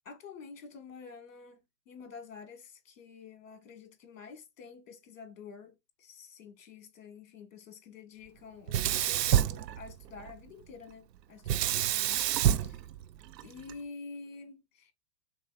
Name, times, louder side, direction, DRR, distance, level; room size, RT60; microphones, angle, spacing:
voice 1, 0.0-1.6 1.9-12.2 12.6-12.8 13.4-14.9, left 5 dB, 55° left, 1.6 m, -49 dB
Sink (filling or washing), 8.7-10.3 11.5-13.7, right 11 dB, 85° right, 0.6 m, -28 dB
4.1 x 3.8 x 2.3 m
hypercardioid pair, 175°, 48 cm